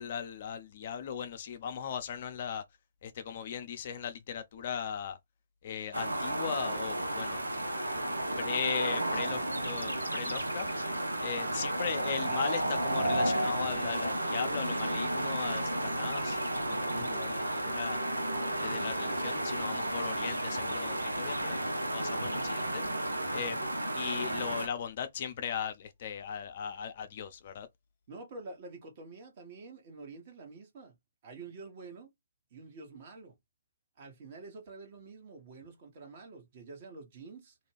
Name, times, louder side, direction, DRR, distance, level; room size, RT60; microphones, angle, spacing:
voice 1, 0.0-2.6 3.0-5.2 5.6-7.4 8.4-10.7 11.2-18.0 18.4-22.8 23.3-23.6 23.9-27.7, left 8 dB, 45° left, 0.5 m, -38 dB
sound 1, 5.9-24.7, right 1 dB, 85° right, 0.6 m, -32 dB
voice 2, 11.1-11.5 16.9-17.2 23.3-23.6 28.1-31.0 31.2-32.1 32.5-33.4 34.0-37.6, right 3 dB, 40° right, 1.1 m, -48 dB
2.5 x 2.2 x 3.2 m
figure-of-eight pair, 135°, 0 cm